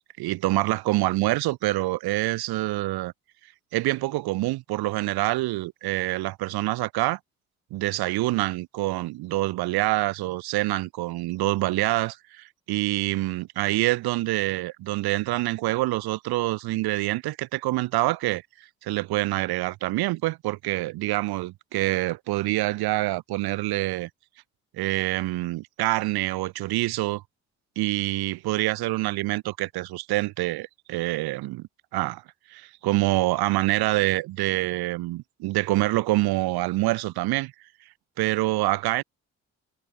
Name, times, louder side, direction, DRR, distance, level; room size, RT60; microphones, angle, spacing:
voice 1, 0.2-3.1 3.7-7.2 7.7-18.4 18.8-24.1 24.7-27.2 27.8-32.2 32.5-37.5 38.2-39.0, right 18 dB, 80° right, 2.1 m, -26 dB
hypercardioid pair, 45°, 38 cm